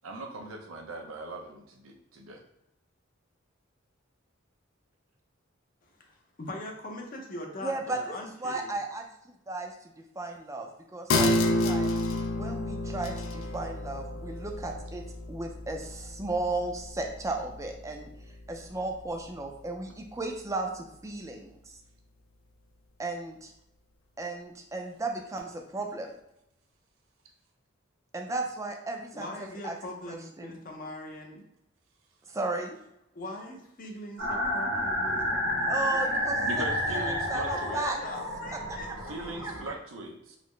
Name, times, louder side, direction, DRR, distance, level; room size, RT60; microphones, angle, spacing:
voice 1, 0.0-2.4 36.4-37.8 39.1-40.4, right 2 dB, 85° right, 2 dB, 0.6 m, -39 dB
voice 2, 6.4-8.7 29.1-31.4 33.1-36.0 37.5-39.0, left 1 dB, 45° left, 1 dB, 0.6 m, -41 dB
voice 3, 7.6-11.9 12.3-18.1 18.5-21.8 23.0-23.5 24.2-26.1 28.1-29.8 30.1-30.5 32.3-32.8 35.7-38.0 38.7-38.8 39.4-39.7, right 2 dB, 15° right, 3 dB, 0.4 m, -35 dB
sound 1, 11.1-18.1 18.5-18.6, left 2 dB, 80° left, 0.4 m, -30 dB
sound 2, 34.2-39.7, equal, 65° right, 1.1 m, -30 dB
3.9 x 2.0 x 3.1 m, 0.81 s
head